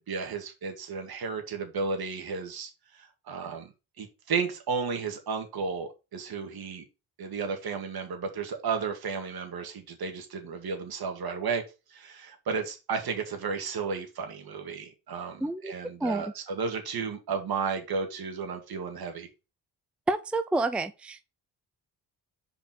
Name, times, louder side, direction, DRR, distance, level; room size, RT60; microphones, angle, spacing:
voice 1, 0.0-3.7 4.0-6.8 7.2-11.6 11.9-19.3, right 5 dB, 70° right, 2.1 m, -33 dB
voice 2, 15.4-15.7 16.0-16.3 20.1-21.4, right 2 dB, 5° right, 0.5 m, -29 dB
5.2 x 4.6 x 6.1 m
cardioid pair, 85°, 39 cm